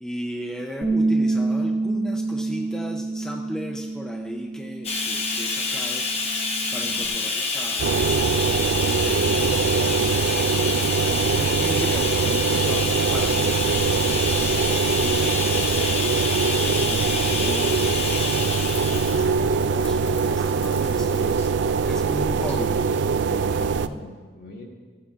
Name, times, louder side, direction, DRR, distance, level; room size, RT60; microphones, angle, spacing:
voice 1, 0.0-6.1 6.7-8.2 9.0-10.2 10.6-16.2 16.8-17.9 18.5-23.8, equal, 5° left, 1 dB, 0.5 m, -37 dB
Bass guitar, 0.8-7.1, right 3 dB, 25° right, 1.2 m, -28 dB
Bathtub (filling or washing), 4.8-21.5 22.4-22.6 22.9-23.0, left 4 dB, 35° left, 1.0 m, -28 dB
sound 1, 7.8-23.9, right 5 dB, 75° right, 0.4 m, -23 dB
voice 2, 23.5-24.6, left 1 dB, 55° left, 0 dB, 1.7 m, -42 dB
15.5 x 8.6 x 3.7 m, 1.5 s
head